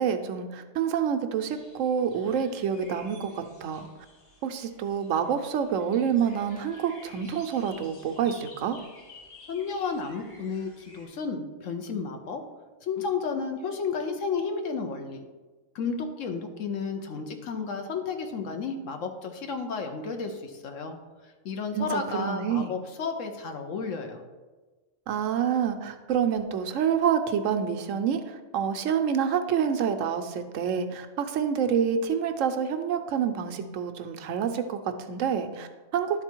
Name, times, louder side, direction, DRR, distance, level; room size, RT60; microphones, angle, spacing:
voice 1, 0.0-3.9 4.4-8.8 21.7-22.7 25.1-36.2, right 7 dB, 90° right, 7 dB, 1.0 m, -27 dB
sound 1, 1.5-11.1, left 2 dB, 50° left, 1.9 m, -52 dB
voice 2, 9.5-12.4 12.8-15.2 15.7-21.0 21.2-24.2, left 5 dB, 85° left, 5 dB, 1.2 m, -32 dB
11.0 x 4.1 x 4.5 m, 1.3 s
omnidirectional pair, 1.3 m